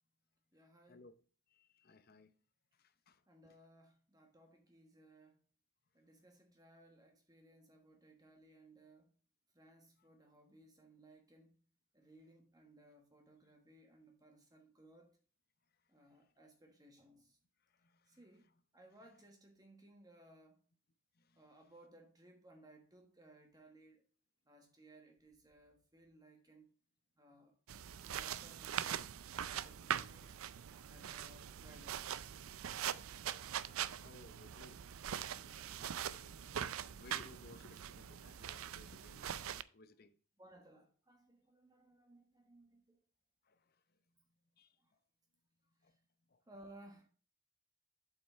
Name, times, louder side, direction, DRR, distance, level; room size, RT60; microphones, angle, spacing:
voice 1, 0.5-1.0 3.3-5.4 5.9-9.1 9.5-11.6 11.9-15.2 15.9-17.4 18.1-18.5 18.7-20.6 21.4-24.0 24.4-26.7 27.2-27.6 28.0-29.1 29.4-32.3 34.0-34.3 40.4-43.0 44.8-44.9 45.8-46.0 46.4-47.1, right 1 dB, 15° right, 1.2 m, -62 dB
voice 2, 1.5-2.3 2.7-3.6 10.0-10.1 16.0-16.3 17.6-18.5 21.1-21.5 27.3-27.4 33.5-34.8 35.2-40.2 43.4-44.0 44.6-44.8 45.8-46.0 46.3-46.4, left 2 dB, 45° left, 0.7 m, -62 dB
sound 1, 27.7-39.6, right 9 dB, 80° right, 0.4 m, -43 dB
7.8 x 5.9 x 4.3 m
head